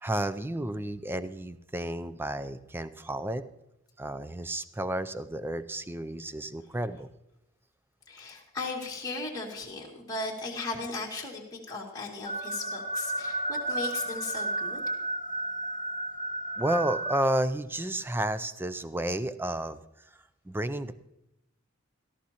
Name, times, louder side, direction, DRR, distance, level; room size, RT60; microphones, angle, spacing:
voice 1, 0.0-3.4 4.0-7.1 16.6-19.8 20.5-21.0, right 1 dB, 10° right, 13 dB, 0.4 m, -31 dB
voice 2, 8.1-14.8, left 3 dB, 20° left, -3 dB, 2.2 m, -37 dB
sound 1, 12.2-17.2, right 1 dB, 40° left, 2.0 m, -33 dB
17.5 x 13.5 x 2.9 m, 0.89 s
head